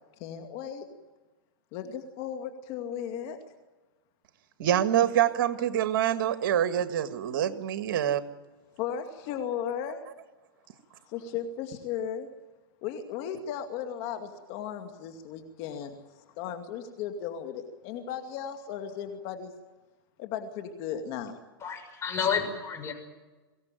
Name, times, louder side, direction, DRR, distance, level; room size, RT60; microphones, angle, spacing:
voice 1, 0.2-0.8 1.7-3.4 5.0-5.1 8.8-10.0 11.1-12.3 12.8-16.0 16.4-19.5 20.2-21.4, left 8 dB, 45° left, 6 dB, 2.4 m, -36 dB
voice 2, 4.6-8.2, right 10 dB, 65° right, 9 dB, 1.7 m, -26 dB
voice 3, 21.6-22.9, left 6 dB, 20° left, 5 dB, 6.5 m, -30 dB
23.5 x 17.0 x 9.1 m, 1.2 s
hypercardioid pair, 130°, 12 cm